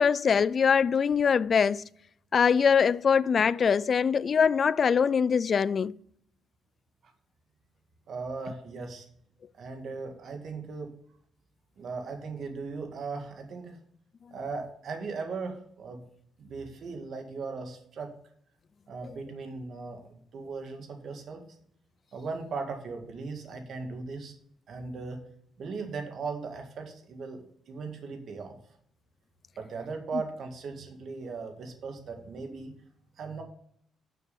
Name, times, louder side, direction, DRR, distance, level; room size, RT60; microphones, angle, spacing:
voice 1, 0.0-1.9 2.3-5.9, left 6 dB, 45° left, 0.3 m, -23 dB
voice 2, 8.1-9.1 9.6-10.9 11.8-13.8 14.3-16.0 16.4-18.1 18.9-21.4 22.1-24.3 24.7-25.2 25.6-28.6 29.6-32.7 33.2-33.4, right 4 dB, 60° right, 1.9 m, -38 dB
6.7 x 6.1 x 7.0 m
cardioid pair, 90°, 0 cm